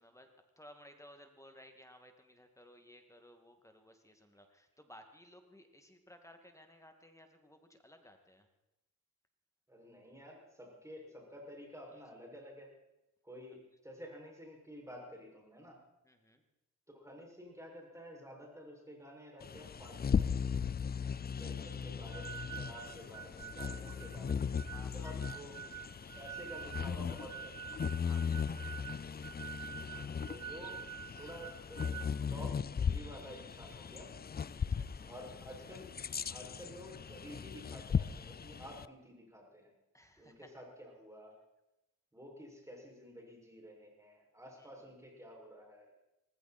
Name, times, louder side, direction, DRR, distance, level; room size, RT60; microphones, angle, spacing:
voice 1, 0.0-8.5 16.0-16.4 20.8-21.3 21.6-21.8 24.7-25.4 28.0-28.9 34.5-35.2 39.9-40.6 44.5-44.9, equal, 10° left, 5 dB, 2.4 m, -59 dB
voice 2, 9.7-12.7 13.2-15.8 16.9-20.4 21.3-24.6 24.9-25.6 26.1-27.8 29.9-30.9 31.1-34.1 35.1-39.7 40.2-41.3 42.1-45.9, equal, 10° right, -1 dB, 6.6 m, -51 dB
Bird vocalization bird call bird song, 19.4-38.9, left 6 dB, 25° left, 0.5 m, -38 dB
sound 1, 22.1-32.2, right 9 dB, 60° right, 1.0 m, -48 dB
19.0 x 16.0 x 4.5 m, 0.93 s
cardioid pair, 75°, 35 cm